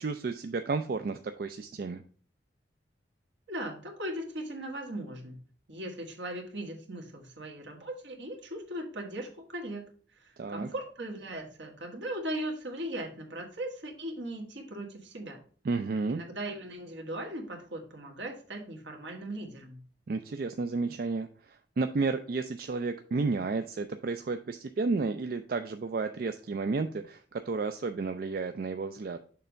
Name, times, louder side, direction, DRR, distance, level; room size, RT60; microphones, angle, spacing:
voice 1, 0.0-2.0 10.4-10.7 15.6-16.2 20.1-29.2, right 4 dB, 50° right, 7 dB, 0.4 m, -32 dB
voice 2, 3.5-5.4 5.7-9.8 10.2-15.4 16.1-19.8, right 1 dB, 75° right, 1 dB, 1.6 m, -38 dB
6.7 x 3.3 x 5.1 m, 0.43 s
head